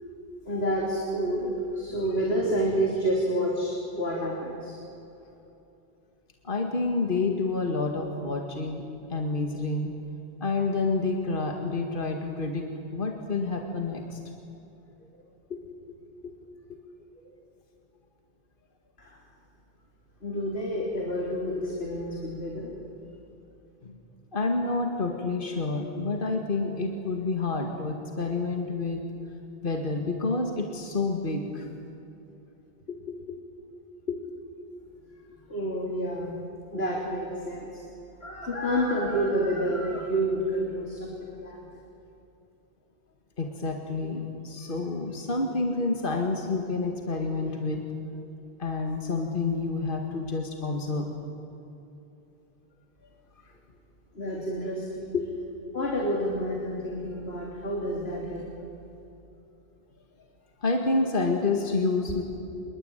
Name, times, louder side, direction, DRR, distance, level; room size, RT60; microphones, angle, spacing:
voice 1, 0.5-4.8 19.0-19.2 20.2-22.7 35.5-36.3 36.7-37.8 38.2-41.6 54.1-55.1 55.7-58.5, equal, 85° left, -1 dB, 3.6 m, -29 dB
voice 2, 6.4-8.8 9.1-9.9 10.4-14.2 15.0-15.1 15.5-15.6 16.2-16.3 16.7-16.8 17.3-17.4 23.8-24.0 24.3-29.0 29.6-31.7 32.9-33.4 34.1-34.2 43.4-47.8 48.6-51.1 53.4-53.5 55.1-55.3 60.6-62.2, left 3 dB, 60° left, 3 dB, 2.2 m, -29 dB
27.0 x 23.0 x 9.2 m, 2.9 s
omnidirectional pair, 1.0 m